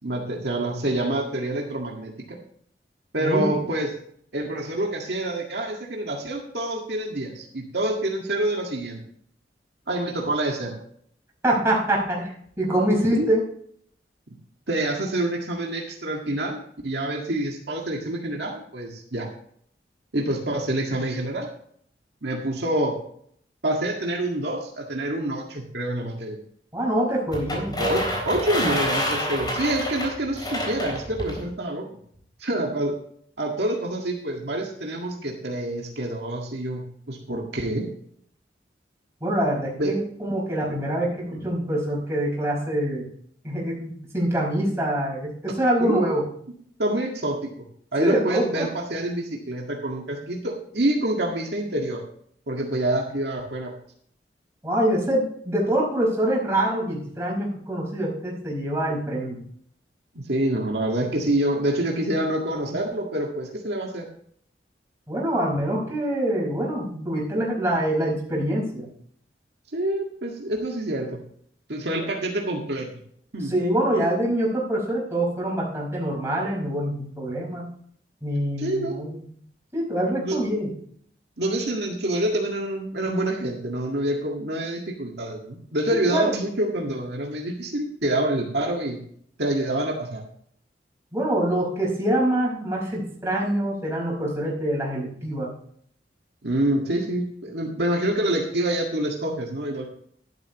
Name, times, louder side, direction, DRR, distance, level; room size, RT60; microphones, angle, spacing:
voice 1, 0.0-2.4 3.1-3.9 4.3-9.0 9.9-10.8 13.1-13.3 14.7-19.3 20.1-21.5 22.2-23.0 23.6-26.4 27.8-31.9 32.4-32.9 33.4-37.9 39.8-39.9 45.8-46.1 46.8-47.5 47.9-52.0 52.5-53.7 60.2-64.1 69.7-71.2 71.7-72.9 73.3-73.5 78.6-79.2 80.2-80.5 81.4-89.0 89.4-90.2 96.4-99.9, right 1 dB, 65° right, 0 dB, 1.9 m, -27 dB
voice 2, 3.2-3.6 11.4-12.3 12.6-13.4 26.7-27.8 39.2-43.1 43.4-46.2 48.0-48.7 54.6-59.4 65.1-68.9 73.4-77.7 78.2-79.2 79.7-80.7 85.9-86.3 91.1-95.5, right 1 dB, 15° right, -4 dB, 5.0 m, -25 dB
sound 1, 27.3-31.4, left 1 dB, 25° left, 3.8 m, -28 dB
12.0 x 11.5 x 3.1 m, 0.63 s
head